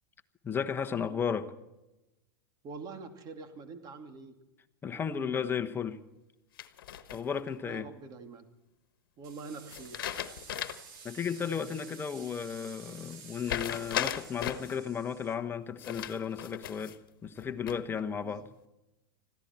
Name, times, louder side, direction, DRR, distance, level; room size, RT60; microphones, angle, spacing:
voice 1, 0.4-1.5 4.8-6.0 7.1-7.9 11.0-18.5, left 7 dB, 20° left, 7 dB, 1.2 m, -34 dB
voice 2, 2.6-4.3 7.6-8.4 9.2-10.0 18.2-18.4, right 4 dB, 35° right, 6 dB, 2.4 m, -45 dB
sound 1, 6.6-7.5 9.7-11.0 11.4-11.5 13.5-14.8 15.8-17.0 17.4-18.0, left 11 dB, 80° left, 1.2 m, -36 dB
sound 2, 9.2-15.3, right 6 dB, 65° right, 3.7 m, -51 dB
21.0 x 15.0 x 4.4 m, 0.95 s
hypercardioid pair, 120°, 11 cm